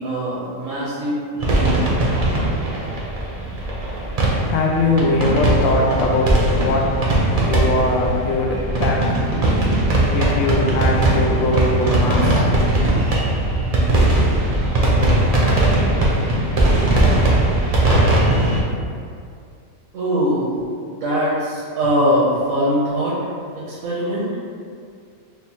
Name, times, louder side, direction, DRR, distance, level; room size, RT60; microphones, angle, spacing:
voice 1, 0.0-1.8 19.9-20.5 20.9-23.2 23.5-24.3, equal, 70° right, -8 dB, 1.1 m, -22 dB
sound 1, 1.4-18.6, right 1 dB, 45° right, 0.5 m, -19 dB
voice 2, 3.9-13.2, left 2 dB, 70° left, 0 dB, 0.9 m, -22 dB
3.4 x 2.2 x 4.3 m, 2.3 s
omnidirectional pair, 1.4 m